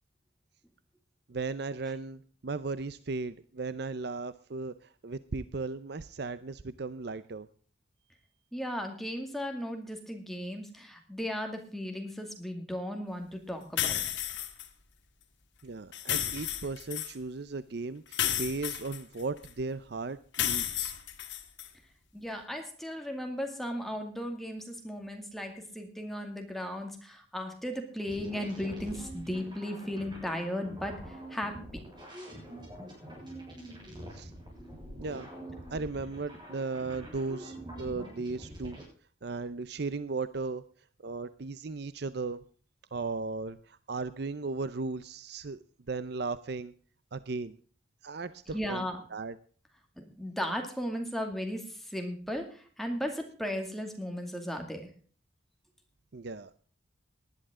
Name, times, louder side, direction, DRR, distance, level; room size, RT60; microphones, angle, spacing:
voice 1, 1.3-7.5 15.6-20.9 34.1-34.3 35.0-35.3 35.7-38.8 39.2-40.6 41.0-42.4 42.9-45.6 45.9-46.7 47.1-47.6 48.0-49.4 56.1-56.5, right 3 dB, 55° right, 15 dB, 0.6 m, -36 dB
voice 2, 8.5-14.0 22.1-31.6 48.5-49.0 50.0-54.8, equal, ahead, 3 dB, 2.3 m, -36 dB
sound 1, 13.8-14.7 15.9-17.1 18.1-19.5 20.3-21.7, left 11 dB, 70° left, 2.0 m, -32 dB
sound 2, 28.1-38.8, right 1 dB, 25° right, 7.2 m, -45 dB
19.0 x 11.0 x 3.7 m, 0.43 s
head